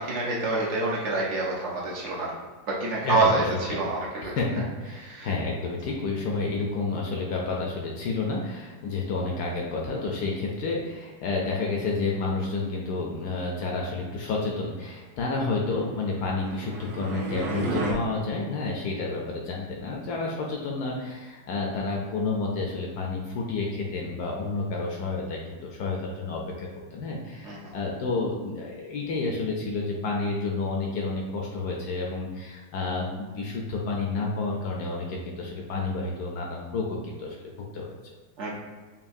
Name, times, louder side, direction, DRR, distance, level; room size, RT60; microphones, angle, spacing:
voice 1, 0.0-2.3 2.7-4.3 5.1-5.3 27.4-27.7 38.4-38.5, right 3 dB, 60° right, -4 dB, 0.8 m, -27 dB
voice 2, 2.9-3.4 3.7-3.8 4.2-38.0, left 3 dB, 70° left, -1 dB, 1.0 m, -30 dB
sound 1, 16.0-17.9, right 2 dB, 80° right, 1.3 m, -32 dB
5.6 x 2.3 x 2.6 m, 1.3 s
omnidirectional pair, 2.0 m